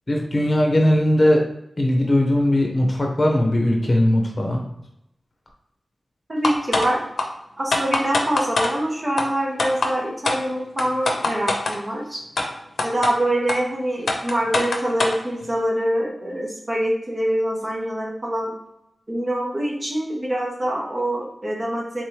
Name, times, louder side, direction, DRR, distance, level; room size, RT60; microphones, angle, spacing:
voice 1, 0.1-1.4 1.8-4.6, left 1 dB, 35° left, 1 dB, 0.9 m, -19 dB
voice 2, 6.3-7.0 7.6-12.2 12.8-18.5 19.1-22.0, right 1 dB, 30° right, -2 dB, 1.0 m, -25 dB
sound 1, 6.4-6.9 7.2-7.3 7.7-8.7 9.2-9.3 9.6-9.9 10.2-10.4 10.8-11.8 12.4-12.5 12.8-13.1 13.5-13.6 14.1-15.2, left 3 dB, 70° left, 0.6 m, -22 dB
3.7 x 3.3 x 2.9 m, 0.82 s
wide cardioid pair, 115°, 0 cm